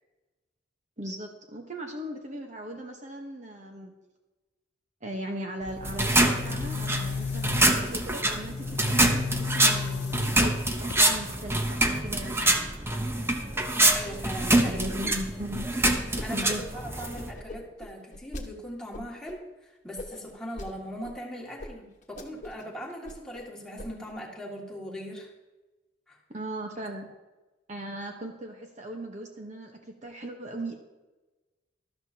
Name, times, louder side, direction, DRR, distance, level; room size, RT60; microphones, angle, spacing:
voice 1, 1.0-3.9 5.0-10.5 10.8-12.7 14.6-15.7 16.3-16.6 26.3-27.1 27.7-30.8, right 1 dB, 40° right, 2 dB, 1.1 m, -38 dB
Boom, 5.6-11.4, left 5 dB, 65° left, 0.4 m, -35 dB
sound 1, 5.8-17.3, right 1 dB, 15° right, 0.8 m, -25 dB
voice 2, 13.9-14.8 16.2-25.3 26.1-26.2, equal, 5° left, -4 dB, 2.2 m, -40 dB
sound 2, 15.8-16.3 16.5-18.4 18.9-19.3 20.0-20.7 21.0-21.1 21.6-21.7 22.0-22.6 22.9-23.4 23.8-24.1, left 1 dB, 45° left, 1.3 m, -41 dB
12.5 x 12.5 x 2.9 m, 1.1 s
head